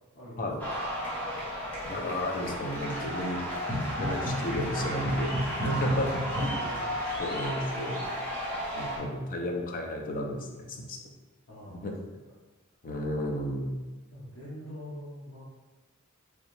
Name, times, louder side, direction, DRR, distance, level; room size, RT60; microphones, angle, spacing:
voice 1, 0.1-0.5 4.2-5.0 5.7-7.3 11.5-11.9 14.1-15.4, equal, 65° left, -8 dB, 1.0 m, -45 dB
sound 1, 0.6-9.0, equal, 10° left, 0.8 m, -32 dB
voice 2, 1.8-3.4 3.7-5.3 5.6-6.1 6.4-6.6 7.2-8.1 8.7-11.0 11.7-11.9 12.8-13.8, left 1 dB, 40° left, 1 dB, 0.5 m, -33 dB
3.2 x 2.8 x 3.1 m, 1.2 s
head